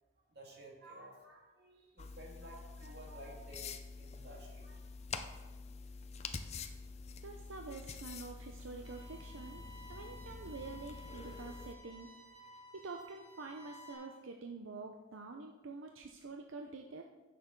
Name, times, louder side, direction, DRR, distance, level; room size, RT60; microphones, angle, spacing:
voice 1, 0.2-3.7 4.0-4.9, right 1 dB, 55° right, -1 dB, 2.2 m, -54 dB
sound 1, 2.0-11.8, left 4 dB, 35° left, 0.5 m, -47 dB
voice 2, 7.2-9.6 9.9-12.1 12.7-17.0, right 3 dB, 85° right, 3 dB, 0.7 m, -47 dB
sound 2, 8.8-13.9, right 1 dB, 30° right, 4.0 m, -55 dB
15.0 x 6.8 x 3.8 m, 1.2 s
head